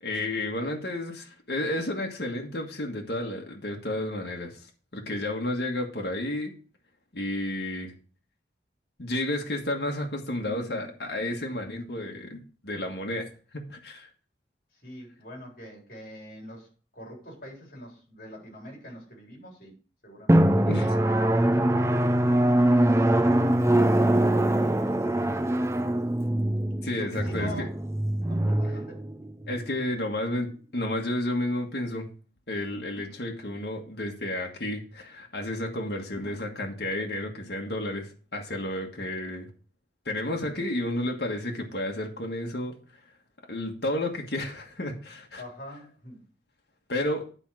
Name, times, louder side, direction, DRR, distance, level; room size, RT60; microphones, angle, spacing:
voice 1, 0.0-6.5 7.1-7.9 9.0-13.3 13.7-14.1 20.7-20.9 26.8-27.5 29.5-32.1 32.5-39.5 40.0-42.7 43.5-45.4 46.9-47.3, left 1 dB, 65° left, 0 dB, 1.5 m, -31 dB
voice 2, 14.7-16.7 16.9-19.8 20.0-20.9 21.8-25.6 26.9-27.7 28.3-29.0 45.4-46.2, left 1 dB, 50° left, 0 dB, 4.0 m, -45 dB
Drum, 20.3-29.6, right 1 dB, 15° right, 0.5 m, -23 dB
9.9 x 4.5 x 6.1 m, 0.39 s
head